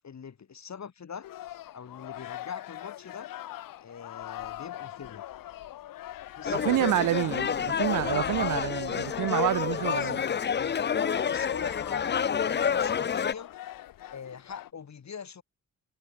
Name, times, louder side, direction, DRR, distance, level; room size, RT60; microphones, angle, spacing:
voice 1, 0.0-1.3 1.7-3.3 3.8-5.2 6.3-7.1 9.8-10.8 11.2-13.5 14.1-15.4, left 7 dB, 55° left, 3.7 m, -43 dB
sound 1, 1.2-14.7, left 13 dB, 90° left, 1.3 m, -43 dB
sound 2, 6.4-13.3, left 7 dB, 35° left, 0.5 m, -28 dB
voice 2, 6.5-10.2, right 14 dB, 70° right, 0.6 m, -28 dB
cardioid pair, 60°, 33 cm